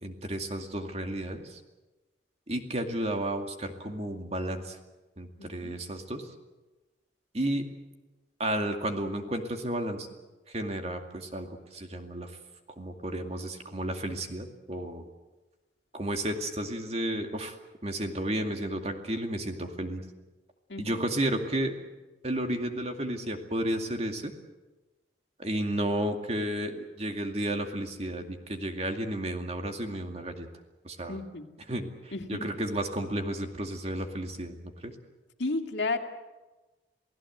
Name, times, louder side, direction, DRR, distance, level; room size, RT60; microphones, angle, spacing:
voice 1, 0.0-1.6 2.5-4.8 5.2-6.2 7.3-7.6 8.4-10.1 10.5-12.3 12.8-15.1 15.9-17.5 17.8-20.0 20.8-21.7 22.2-24.3 25.4-30.5 30.8-31.2 31.7-34.6 34.8-34.9, right 1 dB, 35° right, 5 dB, 2.3 m, -32 dB
voice 2, 5.4-5.8 20.7-20.9 31.1-31.5 32.1-32.4 35.4-36.0, left 3 dB, 85° left, 4 dB, 2.3 m, -32 dB
28.5 x 17.5 x 7.9 m, 1.1 s
head